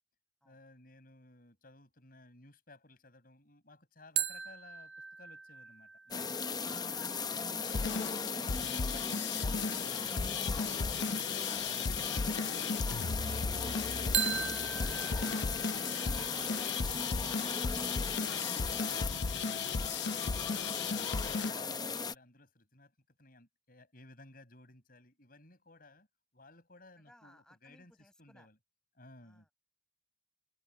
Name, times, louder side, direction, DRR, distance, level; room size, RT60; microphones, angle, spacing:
voice 1, 0.4-6.4 7.5-9.3 9.8-10.1 11.6-11.9 13.1-16.4 17.0-17.2 17.7-19.9 20.8-22.9 23.2-26.1 26.3-27.9 28.2-28.6 28.9-29.5, left 2 dB, 55° left, 7.5 m, -57 dB
sound 1, 4.2-7.7 14.1-16.9, right 8 dB, 70° right, 0.9 m, -39 dB
sound 2, 6.1-22.2, left 5 dB, 25° left, 0.7 m, -37 dB
voice 2, 6.3-8.7 27.0-28.5 29.2-29.5, equal, 5° left, 7.5 m, -62 dB
sound 3, 7.6-21.5, left 4 dB, 75° left, 0.6 m, -36 dB
head